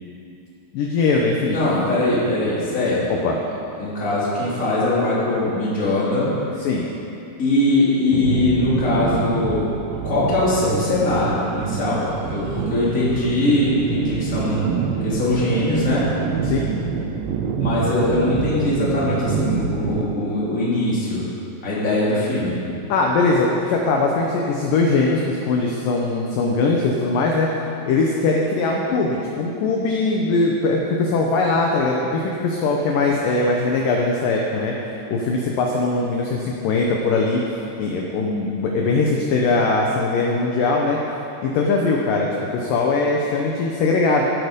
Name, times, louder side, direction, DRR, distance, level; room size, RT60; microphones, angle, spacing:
voice 1, 0.7-1.6 3.2-3.4 6.6-6.9 16.4-16.7 22.9-27.5 27.9-34.7 35.1-37.4 37.8-41.0 41.4-44.3, left 3 dB, 70° left, 0 dB, 2.2 m, -21 dB
voice 2, 1.5-3.2 3.8-6.3 7.4-9.7 10.0-14.7 15.0-16.0 17.6-21.2 21.6-22.6, left 2 dB, 20° left, -8 dB, 3.3 m, -21 dB
sound 1, 8.1-20.0, right 6 dB, 90° right, 3.0 m, -26 dB
15.0 x 11.0 x 5.3 m, 2.8 s
omnidirectional pair, 4.9 m